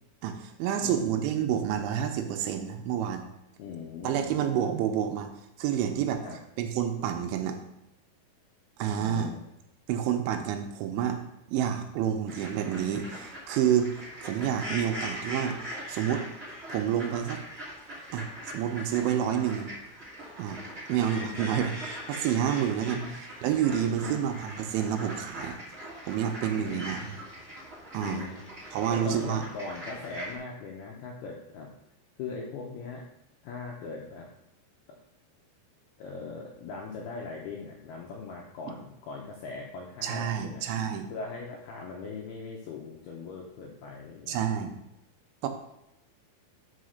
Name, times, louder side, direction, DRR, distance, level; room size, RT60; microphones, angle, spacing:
voice 1, 0.2-3.3 4.0-5.3 5.6-6.2 6.6-7.6 8.8-9.3 9.9-11.2 11.5-13.9 14.2-15.6 15.9-16.2 16.7-17.4 18.1-18.3 18.5-19.7 20.4-20.6 20.9-23.0 23.4-25.6 26.1-27.1 27.9-28.3 28.7-29.5 40.0-41.1 44.3-44.7 45.4-45.5, right 9 dB, 80° right, 5 dB, 2.9 m, -28 dB
voice 2, 0.8-1.2 3.6-4.4 6.2-6.4 9.0-9.4 21.2-21.6 22.9-23.1 23.9-24.2 26.6-27.0 28.0-28.4 28.9-31.7 32.2-33.1 33.4-34.3 36.0-40.6 41.1-44.4, left 4 dB, 80° left, -2 dB, 2.3 m, -40 dB
sound 1, 12.3-30.3, equal, 35° right, 1.0 m, -41 dB
5.8 x 5.6 x 6.4 m, 0.86 s
omnidirectional pair, 5.6 m